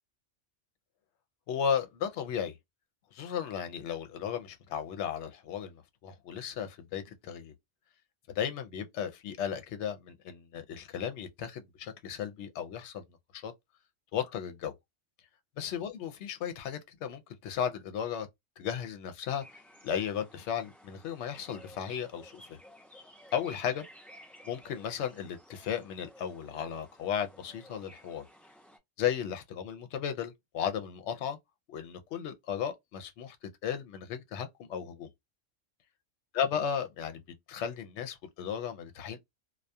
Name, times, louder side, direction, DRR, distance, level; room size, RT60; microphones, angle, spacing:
voice 1, 1.5-2.6 3.1-7.5 8.3-13.0 13.3-13.5 14.1-14.7 15.6-18.3 18.6-19.4 19.8-22.6 23.3-23.8 24.4-28.3 29.0-31.4 31.7-35.1 36.3-37.2 37.5-39.2, left 8 dB, 75° left, 0.9 m, -35 dB
sound 1, 19.4-28.8, equal, ahead, 0.4 m, -55 dB
2.3 x 2.2 x 2.6 m
omnidirectional pair, 1.3 m